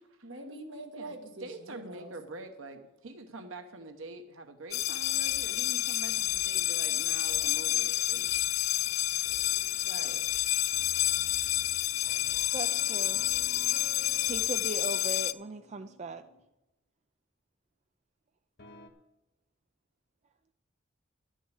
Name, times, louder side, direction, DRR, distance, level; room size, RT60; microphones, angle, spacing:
voice 1, 0.2-2.1 9.8-10.2, right 2 dB, 65° right, 2 dB, 1.9 m, -44 dB
voice 2, 1.4-8.3, right 2 dB, 90° right, 6 dB, 1.0 m, -45 dB
sound 1, 4.7-15.3, left 15 dB, 85° left, 0.4 m, -29 dB
sound 2, 4.8-14.9, equal, 10° left, 3.3 m, -57 dB
sound 3, 10.7-16.4 18.6-18.9, left 3 dB, 55° left, 1.2 m, -53 dB
voice 3, 12.5-13.2 14.2-16.2, right 3 dB, 35° right, 8 dB, 0.4 m, -38 dB
11.5 x 6.4 x 8.1 m, 0.96 s
head